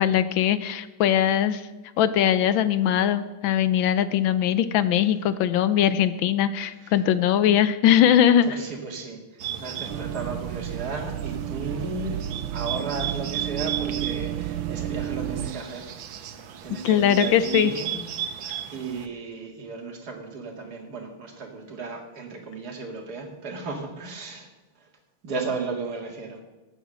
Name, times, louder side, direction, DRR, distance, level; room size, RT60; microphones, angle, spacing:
voice 1, 0.0-1.6 2.0-8.6 16.8-17.7, left 10 dB, 75° left, 13 dB, 1.4 m, -21 dB
voice 2, 8.4-9.2 9.6-12.2 12.5-15.9 16.6-18.4 18.7-24.5 25.2-26.4, right 4 dB, 50° right, 2 dB, 2.5 m, -34 dB
Bird, 9.4-19.1, right 9 dB, 75° right, 1.7 m, -36 dB
sound 1, 9.9-15.5, right 11 dB, 90° right, 1.4 m, -31 dB
15.0 x 8.2 x 6.3 m, 1.1 s
omnidirectional pair, 2.2 m